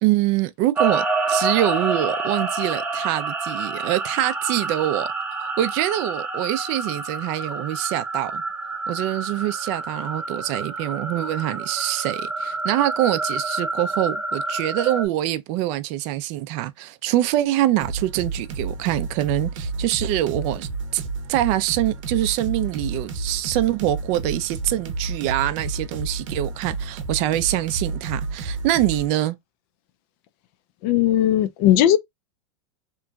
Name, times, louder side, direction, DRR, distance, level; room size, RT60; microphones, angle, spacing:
voice 1, 0.0-5.1 5.6-8.4 8.9-21.0 21.3-29.4, right 14 dB, 45° right, 0.4 m, -24 dB
sound 1, 0.7-15.1, right 3 dB, 10° right, 0.7 m, -28 dB
sound 2, 17.8-29.1, right 3 dB, 80° right, 0.8 m, -31 dB
voice 2, 30.8-32.0, left 12 dB, 50° left, 0.4 m, -17 dB
2.9 x 2.5 x 2.2 m
supercardioid pair, 130°, 16 cm